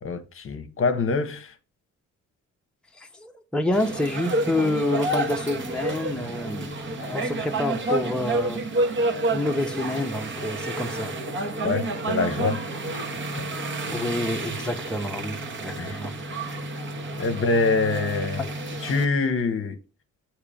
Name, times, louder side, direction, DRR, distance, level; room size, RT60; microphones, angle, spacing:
voice 1, 0.0-1.5 11.6-12.6 12.9-13.0 15.8-16.0 17.2-18.4 18.8-19.8, left 3 dB, 45° left, 1.0 m, -25 dB
voice 2, 3.0-6.7 7.1-8.6 9.3-11.1 13.9-16.1 18.4-18.5, left 1 dB, 5° left, 0.9 m, -28 dB
sound 1, 3.7-19.0, right 2 dB, 40° right, 1.3 m, -29 dB
8.3 x 3.0 x 4.9 m
cardioid pair, 90°, 30 cm